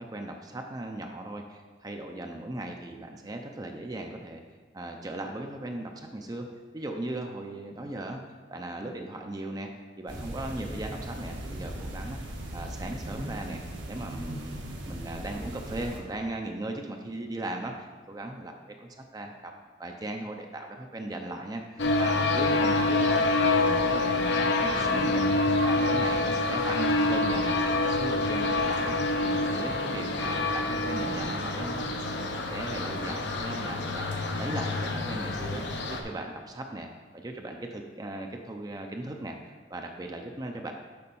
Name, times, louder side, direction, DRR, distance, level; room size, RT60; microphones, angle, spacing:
voice 1, 0.0-4.4 4.7-6.5 6.7-8.2 8.5-9.7 10.0-12.2 12.5-14.6 14.9-19.5 19.8-25.2 25.6-29.0 29.2-31.9 32.5-36.9 37.1-40.7, right 1 dB, 20° right, 3 dB, 0.5 m, -38 dB
sound 1, 10.1-16.0, right 1 dB, 85° right, 1.7 m, -38 dB
sound 2, 21.8-36.0, left 2 dB, 65° left, 0.7 m, -27 dB
6.8 x 5.2 x 5.4 m, 1.4 s
head